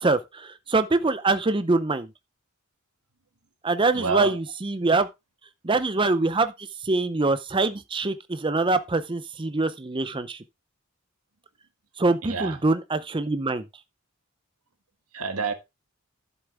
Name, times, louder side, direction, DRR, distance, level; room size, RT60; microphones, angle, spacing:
voice 1, 0.0-2.1 3.6-5.1 5.6-10.4 12.0-13.7, right 3 dB, 20° right, 0.6 m, -24 dB
voice 2, 3.9-4.4 12.2-12.6 15.1-15.5, right 4 dB, 85° right, 1.6 m, -28 dB
11.5 x 7.1 x 3.4 m
head